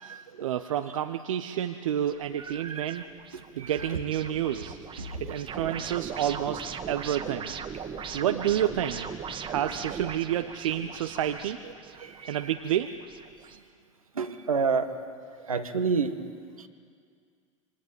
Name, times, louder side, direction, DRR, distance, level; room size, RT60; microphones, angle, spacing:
voice 1, 0.0-3.0 3.6-4.8 5.2-7.6 8.1-9.1 9.4-11.6 12.2-12.9, right 10 dB, 70° right, 8 dB, 1.0 m, -29 dB
sound 1, 2.1-13.6, right 6 dB, 30° right, 2.0 m, -40 dB
voice 2, 14.2-14.9 15.5-16.1, right 5 dB, 85° right, 7 dB, 1.7 m, -27 dB
26.5 x 24.0 x 9.2 m, 2.1 s
hypercardioid pair, 85°, 17 cm